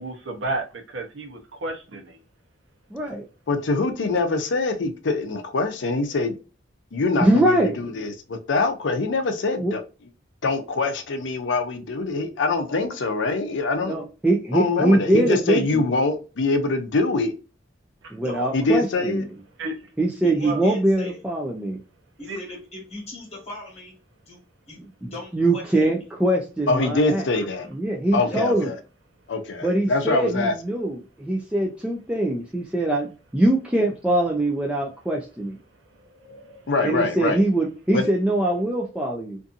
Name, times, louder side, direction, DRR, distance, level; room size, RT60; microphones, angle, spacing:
voice 1, 0.0-2.2 18.0-18.2 19.6-19.9 20.4-20.6 22.3-22.4 36.0-36.7, right 2 dB, 75° right, 0.8 m, -33 dB
voice 2, 2.9-3.2 7.2-7.8 9.6-9.7 13.8-15.9 18.1-19.3 20.0-21.8 25.0-27.2 27.7-28.7 29.6-35.6 36.8-39.4, right 1 dB, 5° right, 0.3 m, -23 dB
voice 3, 3.5-6.4 6.9-9.8 10.4-14.0 14.5-17.3 18.5-19.2 26.7-27.7 28.1-28.7 29.3-30.5 36.7-37.4 37.9-38.1, left 3 dB, 70° left, 0.5 m, -24 dB
voice 4, 18.2-18.6 20.2-21.2 22.2-24.0 24.3-24.4 24.7-24.8 25.1-25.9 28.2-28.5, left 2 dB, 35° left, 1.3 m, -39 dB
2.6 x 2.6 x 2.4 m
head